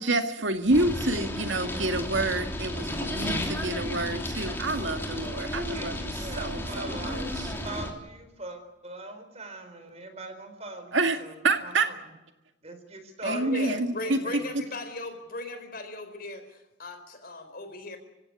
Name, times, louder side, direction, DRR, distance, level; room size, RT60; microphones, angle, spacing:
voice 1, 0.0-7.5 10.9-11.9 13.2-14.6, right 2 dB, 75° right, 7 dB, 2.0 m, -28 dB
sound 1, 0.7-7.9, left 1 dB, 10° left, 3.2 m, -33 dB
voice 2, 2.7-3.2 6.9-7.3 13.2-18.0, left 2 dB, 50° left, 8 dB, 4.3 m, -38 dB
voice 3, 5.7-11.3 11.6-11.9 12.6-13.4 14.0-14.5, right 2 dB, 35° right, 8 dB, 4.1 m, -42 dB
28.5 x 16.5 x 8.5 m, 1.0 s
head